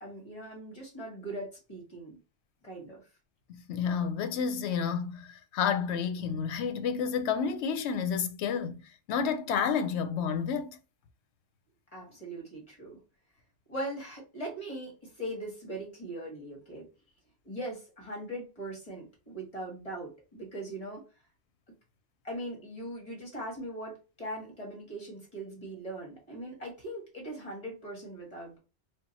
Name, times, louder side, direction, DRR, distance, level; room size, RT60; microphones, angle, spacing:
voice 1, 0.0-2.2 2.6-3.0 11.9-13.0 13.7-16.9 17.5-21.0 22.2-28.6, right 1 dB, 35° left, 1.9 m, -40 dB
voice 2, 3.5-8.8 9.1-10.8, left 6 dB, 85° left, 0.9 m, -30 dB
3.5 x 2.3 x 4.1 m
omnidirectional pair, 1.1 m